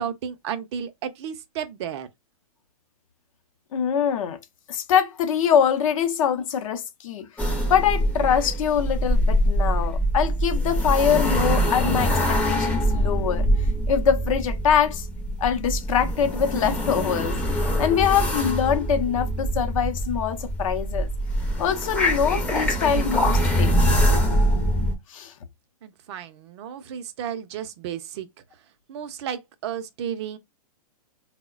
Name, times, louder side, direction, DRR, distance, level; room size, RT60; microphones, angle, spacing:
voice 1, 0.0-2.1 25.8-28.3 28.9-30.4, right 8 dB, 45° right, 0.4 m, -33 dB
voice 2, 3.7-4.4 4.7-13.5 13.9-15.1 15.4-17.4 17.8-21.1 21.6-23.8 25.1-25.3, left 8 dB, 60° left, 0.6 m, -24 dB
sound 1, 7.4-24.9, equal, 5° left, 0.5 m, -24 dB
3.6 x 2.1 x 2.3 m
hypercardioid pair, 135°, 19 cm